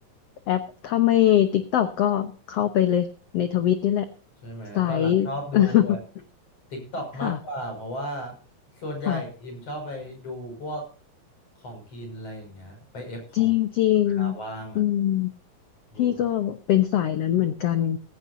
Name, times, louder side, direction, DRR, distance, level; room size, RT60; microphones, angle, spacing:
voice 1, 0.5-3.1 3.3-4.1 4.7-5.3 5.5-6.0 7.2-7.4 9.1-9.2 13.3-14.4 14.7-15.3 16.0-18.0, left 12 dB, 65° left, 9 dB, 1.6 m, -22 dB
voice 2, 4.4-6.0 6.7-8.3 8.8-10.9 11.6-13.5 14.1-14.8 15.9-16.2, equal, 45° left, 4 dB, 6.8 m, -35 dB
17.0 x 15.5 x 2.7 m, 0.37 s
omnidirectional pair, 3.9 m